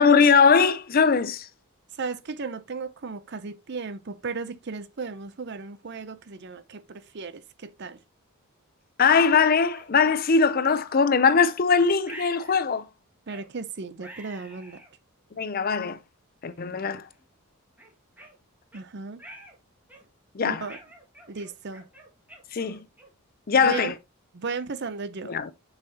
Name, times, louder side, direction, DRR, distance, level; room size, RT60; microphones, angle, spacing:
voice 1, 0.0-1.5 9.0-12.9 15.4-16.0 16.4-17.1 20.3-20.7 22.5-22.8 23.5-23.9 25.2-25.5, left 5 dB, 40° left, 0.5 m, -21 dB
voice 2, 1.9-8.0 13.3-14.8 18.7-19.2 20.4-20.8 21.3-21.9 23.6-23.9 24.3-25.3, right 4 dB, 50° right, 0.6 m, -35 dB
sound 1, 9.7-9.9 10.6-10.8 11.3-11.6 12.0-12.7 13.3-13.5 14.0-14.9 15.6-15.7 16.4-16.7 17.1-17.2 17.8-18.8 19.2-19.6 19.9-20.2 20.7-23.2, right 1 dB, 10° right, 1.6 m, -47 dB
6.7 x 5.6 x 2.8 m
head